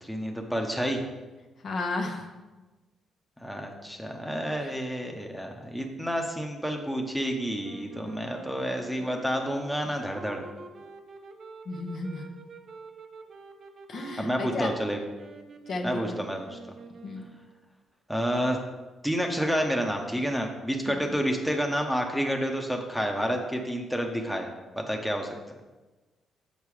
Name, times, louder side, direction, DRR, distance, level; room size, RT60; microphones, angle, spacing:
voice 1, 0.0-1.0 3.4-10.4 14.2-15.0 15.8-16.6 18.1-18.6 19.0-24.5 24.7-25.4, equal, ahead, 2 dB, 1.0 m, -29 dB
voice 2, 1.6-2.3 4.6-4.7 11.6-12.3 13.9-14.7 15.7-16.2 17.0-17.2 20.9-21.0, left 2 dB, 55° left, 2 dB, 1.1 m, -33 dB
sound 1, 7.6-17.6, right 4 dB, 50° right, 0.8 m, -47 dB
7.2 x 5.4 x 4.9 m, 1.2 s
cardioid pair, 90°, 0 cm